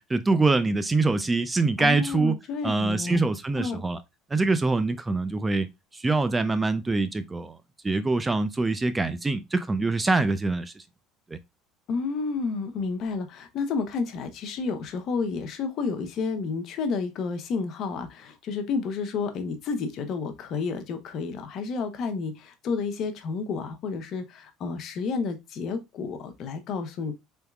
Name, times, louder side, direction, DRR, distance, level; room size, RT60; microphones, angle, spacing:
voice 1, 0.0-2.4 2.6-4.0 4.3-5.7 5.9-7.6 7.8-10.8 11.3-11.4, right 3 dB, 15° right, 0.4 m, -24 dB
voice 2, 1.8-3.2 3.6-3.8 11.9-27.1, left 4 dB, 55° left, 0.7 m, -30 dB
4.0 x 3.5 x 2.3 m
supercardioid pair, 110°, 0 cm